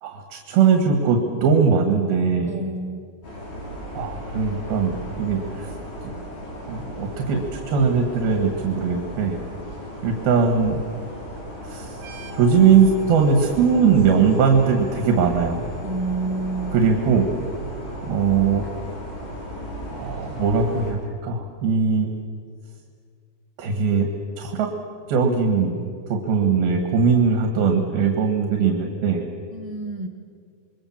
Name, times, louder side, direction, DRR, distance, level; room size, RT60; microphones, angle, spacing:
voice 1, 0.0-2.5 3.9-5.8 6.0-6.1 6.7-9.4 10.0-10.8 11.6-12.0 12.3-15.6 16.7-17.3 18.0-18.7 19.9-22.1 23.6-24.1 24.4-24.7 25.1-25.8 26.1-29.3, right 5 dB, 80° right, 3 dB, 3.7 m, -20 dB
voice 2, 2.4-3.1 15.8-16.9 29.5-30.1, right 2 dB, 40° right, 1 dB, 0.5 m, -29 dB
sound 1, 3.2-20.9, equal, 50° left, 7.9 m, -35 dB
sound 2, 11.9-19.4, right 2 dB, 65° right, 3.2 m, -49 dB
27.5 x 22.5 x 7.4 m, 2.2 s
omnidirectional pair, 4.2 m